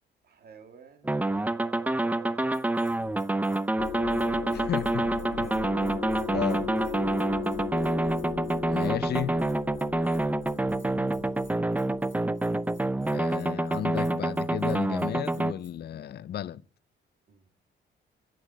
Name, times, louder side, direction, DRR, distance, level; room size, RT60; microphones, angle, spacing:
voice 1, 0.2-3.0 4.3-4.7 6.8-7.1 11.0-11.7 17.3-17.5, right 7 dB, 50° right, 2.0 m, -51 dB
sound 1, 1.0-15.5, right 2 dB, 10° right, 0.5 m, -27 dB
Bell, 2.5-15.7, left 1 dB, 10° left, 3.4 m, -59 dB
sound 2, 3.8-12.9, left 8 dB, 85° left, 1.5 m, -38 dB
voice 2, 4.5-5.1 5.4-5.5 6.3-6.7 8.7-9.4 13.1-16.6, left 10 dB, 55° left, 0.6 m, -33 dB
9.5 x 8.8 x 7.8 m
cardioid pair, 90°, 20 cm